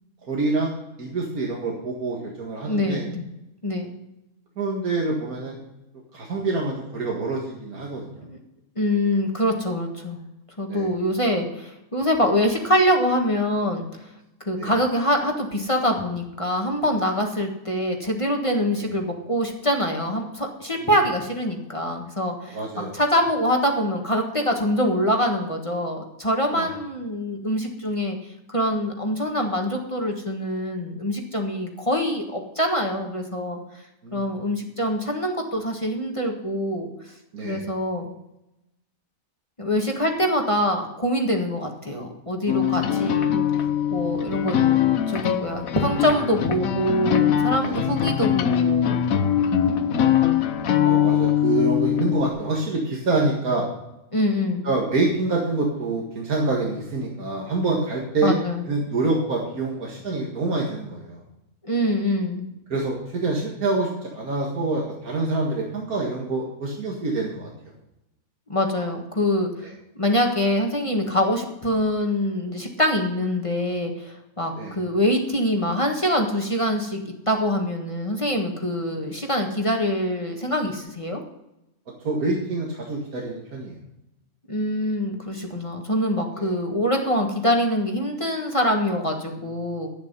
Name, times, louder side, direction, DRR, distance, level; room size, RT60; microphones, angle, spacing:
voice 1, 0.3-0.7 1.0-3.0 4.6-5.6 6.1-8.3 10.7-10.9 14.6-14.7 18.8-18.9 20.8-20.9 22.5-22.9 26.5-26.7 34.0-34.3 37.3-37.7 47.6-47.8 49.6-50.1 50.8-53.7 54.6-58.4 58.7-61.2 62.7-67.5 69.6-69.7 74.5-74.8 82.0-83.8 86.3-86.5, right 3 dB, 85° right, -2 dB, 2.3 m, -26 dB
voice 2, 2.6-3.3 3.6-4.0 8.3-8.4 8.8-10.2 10.6-14.1 14.4-22.6 22.9-28.2 28.5-33.6 34.1-36.9 37.4-38.1 39.6-44.6 45.1-49.0 54.1-54.7 58.2-58.6 61.6-62.5 68.5-69.7 70.0-77.0 77.3-81.2 84.5-89.9, equal, 20° left, 2 dB, 1.5 m, -24 dB
sound 1, 42.5-52.3, left 9 dB, 75° left, 1.3 m, -22 dB
12.0 x 9.2 x 5.4 m, 0.90 s
omnidirectional pair, 1.5 m